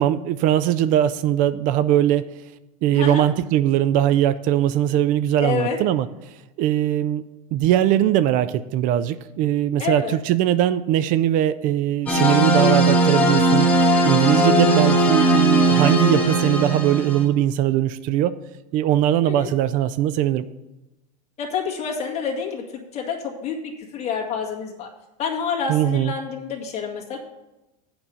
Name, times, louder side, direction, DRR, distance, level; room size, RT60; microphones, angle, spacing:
voice 1, 0.0-2.3 2.8-7.2 7.5-18.4 18.7-20.5 25.7-26.1, right 11 dB, 45° right, 14 dB, 0.4 m, -20 dB
voice 2, 2.9-3.3 5.4-5.8 9.8-10.1 14.3-14.6 19.2-19.5 21.4-24.9 25.2-27.2, left 6 dB, 30° left, 0 dB, 1.8 m, -28 dB
sound 1, 12.1-17.2, right 1 dB, 5° left, 1.7 m, -18 dB
8.6 x 5.2 x 7.0 m, 1.0 s
supercardioid pair, 135°, 20 cm